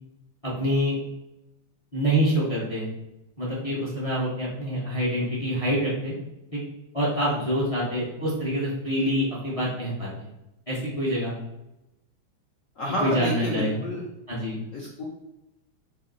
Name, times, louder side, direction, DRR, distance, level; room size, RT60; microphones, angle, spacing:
voice 1, 0.4-1.0 1.9-2.9 3.4-6.1 6.5-6.6 6.9-10.3 10.7-11.3 13.0-13.8 14.3-14.6, equal, 30° left, -7 dB, 0.6 m, -26 dB
voice 2, 12.8-14.1 14.7-15.0, left 1 dB, 75° left, -3 dB, 0.7 m, -30 dB
3.4 x 2.8 x 3.9 m, 0.94 s
omnidirectional pair, 2.2 m